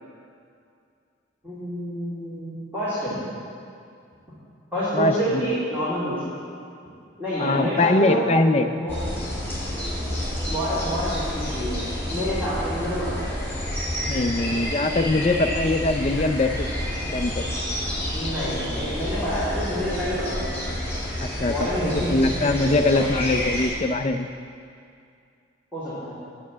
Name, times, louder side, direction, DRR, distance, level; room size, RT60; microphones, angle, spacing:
voice 1, 1.4-3.2 4.7-6.2 7.2-8.2 8.8-9.0 10.5-11.8 12.1-13.2 18.1-20.6 21.5-23.2 25.7-26.2, equal, 10° right, -13 dB, 2.7 m, -28 dB
voice 2, 4.9-5.4 7.4-8.7 14.1-16.7 17.1-17.4 21.2-21.5 21.8-24.3, left 2 dB, 30° left, 6 dB, 0.4 m, -22 dB
sound 1, 8.9-23.7, equal, 10° left, 2.7 m, -29 dB
9.4 x 7.1 x 7.4 m, 2.3 s
head